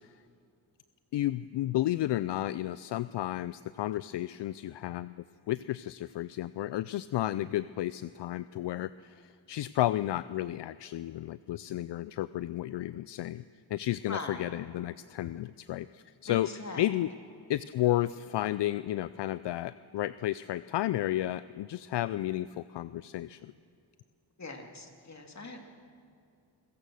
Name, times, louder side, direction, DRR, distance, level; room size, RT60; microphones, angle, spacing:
voice 1, 1.1-5.2 5.5-13.4 13.7-16.5 16.8-17.1 17.5-23.5, left 14 dB, 70° left, 16 dB, 0.5 m, -32 dB
voice 2, 14.1-14.5 16.3-16.8 24.4-25.7, left 3 dB, 35° left, 3 dB, 2.9 m, -41 dB
26.0 x 16.0 x 6.4 m, 2.4 s
cardioid pair, 60°, 44 cm